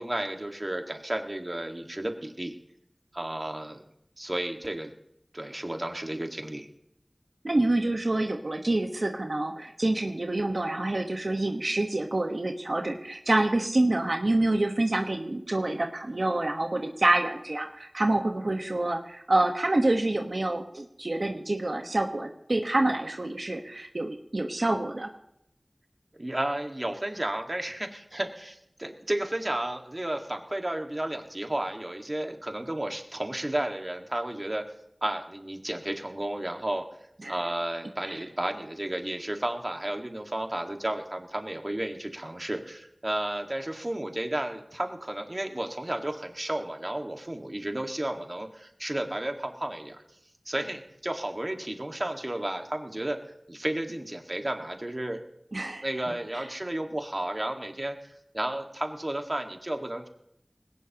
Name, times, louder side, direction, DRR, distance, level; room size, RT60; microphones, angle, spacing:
voice 1, 0.0-2.5 3.1-3.8 4.2-4.9 5.3-6.7 26.1-34.6 35.0-36.8 37.3-50.0 50.5-53.2 53.5-55.2 55.8-60.1, right 1 dB, 45° right, 4 dB, 1.9 m, -32 dB
voice 2, 7.4-25.1 37.2-37.3 38.0-38.2 55.5-55.9 56.3-56.5, right 2 dB, 75° right, 3 dB, 1.3 m, -27 dB
20.0 x 17.5 x 3.0 m, 0.75 s
wide cardioid pair, 45°, 0 cm